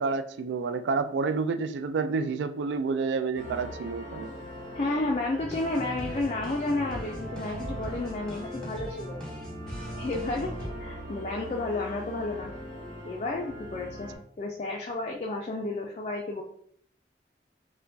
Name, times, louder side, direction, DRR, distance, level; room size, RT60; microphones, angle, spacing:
voice 1, 0.0-4.3, right 4 dB, 85° right, 0.3 m, -29 dB
sound 1, 3.3-14.2, right 1 dB, 45° right, 1.4 m, -41 dB
voice 2, 4.7-9.2 10.0-10.5 10.8-12.5 13.0-14.1 14.4-16.4, left 2 dB, 35° left, 0.3 m, -31 dB
sound 2, 5.4-10.7, equal, 5° left, 0.8 m, -40 dB
4.4 x 2.1 x 2.6 m
head